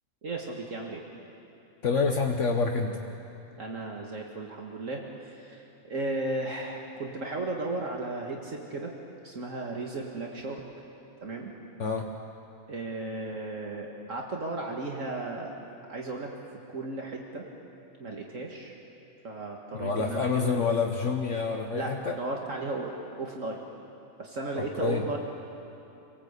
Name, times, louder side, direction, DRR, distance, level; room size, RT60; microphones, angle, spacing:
voice 1, 0.2-1.0 3.6-8.9 9.2-10.7 11.2-11.5 12.7-15.6 15.9-16.3 16.7-17.5 18.0-18.7 19.2-20.8 21.7-23.6 24.2-25.2, right 2 dB, 65° right, 0 dB, 2.1 m, -35 dB
voice 2, 1.8-3.0 11.8-12.1 19.7-22.2 24.5-25.1, left 4 dB, 60° left, 2 dB, 1.5 m, -27 dB
28.0 x 18.5 x 8.2 m, 2.8 s
omnidirectional pair, 1.4 m